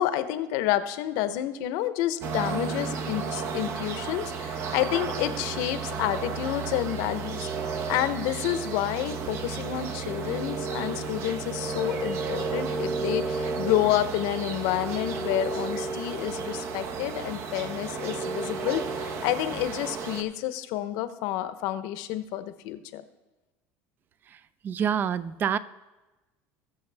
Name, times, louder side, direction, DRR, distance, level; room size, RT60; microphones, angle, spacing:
voice 1, 0.0-23.0, left 13 dB, 70° left, 12 dB, 0.8 m, -29 dB
sound 1, 2.2-20.2, right 4 dB, 45° right, 0.8 m, -32 dB
voice 2, 24.6-25.6, right 8 dB, 30° right, 17 dB, 0.4 m, -26 dB
20.0 x 6.8 x 3.4 m, 1.1 s
cardioid pair, 140°, 6 cm